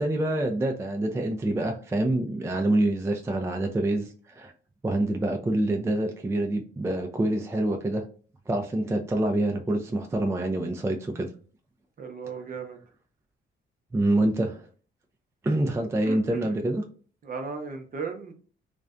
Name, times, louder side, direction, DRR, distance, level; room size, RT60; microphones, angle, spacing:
voice 1, 0.0-4.5 4.8-8.0 8.5-11.3 13.9-14.7 15.4-16.8, right 1 dB, 15° right, 4 dB, 0.3 m, -26 dB
voice 2, 12.0-12.8 15.7-16.5 17.2-18.3, right 4 dB, 45° right, 5 dB, 0.7 m, -36 dB
2.5 x 2.1 x 2.3 m, 0.41 s
cardioid pair, 90°, 20 cm